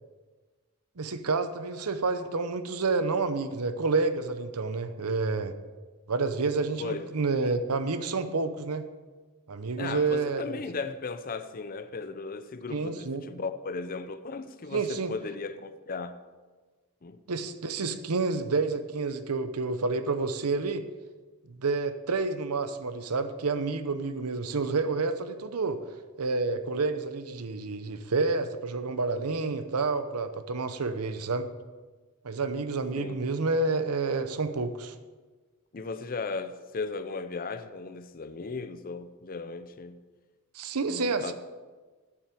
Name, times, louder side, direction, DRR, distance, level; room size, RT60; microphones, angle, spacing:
voice 1, 1.0-5.5 6.1-8.8 9.5-10.5 12.7-13.2 14.7-15.1 17.3-20.8 21.5-25.8 26.2-31.5 32.2-35.0 40.5-41.3, right 3 dB, 85° right, 0.8 m, -29 dB
voice 2, 9.8-16.2 17.0-17.2 33.0-33.2 35.7-40.0 40.9-41.3, left 4 dB, 40° left, 0.6 m, -36 dB
8.8 x 7.3 x 7.6 m
head